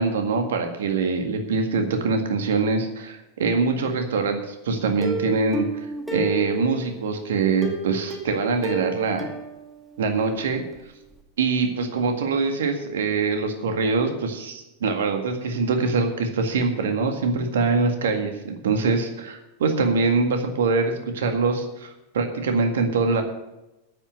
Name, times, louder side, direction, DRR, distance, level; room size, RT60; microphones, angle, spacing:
voice 1, 0.0-5.7 6.1-9.3 10.0-10.6 11.4-23.2, right 4 dB, 60° right, 5 dB, 1.9 m, -24 dB
Plucked string instrument, 5.0-7.0 7.6-10.4 10.7-10.8 11.2-11.3, equal, 5° right, 2.0 m, -31 dB
10.0 x 9.1 x 6.6 m, 0.94 s
figure-of-eight pair, 90°, 0 cm